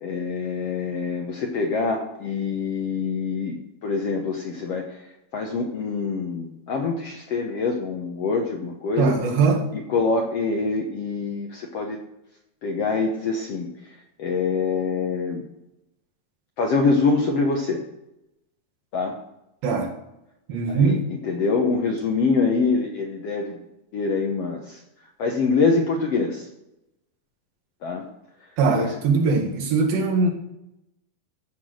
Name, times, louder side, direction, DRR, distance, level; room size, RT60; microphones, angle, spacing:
voice 1, 0.0-3.6 3.8-4.9 5.3-9.1 9.7-12.0 12.6-13.7 14.2-15.4 16.6-17.8 18.9-19.2 20.7-21.0 21.2-23.6 23.9-24.8 25.2-26.4 27.8-28.0 28.7-28.9, left 4 dB, 75° left, 2 dB, 1.4 m, -24 dB
voice 2, 9.0-9.6 19.6-19.9 20.5-21.0 28.6-30.3, right 4 dB, 70° right, 0 dB, 3.6 m, -21 dB
13.5 x 6.0 x 6.3 m, 0.88 s
omnidirectional pair, 4.4 m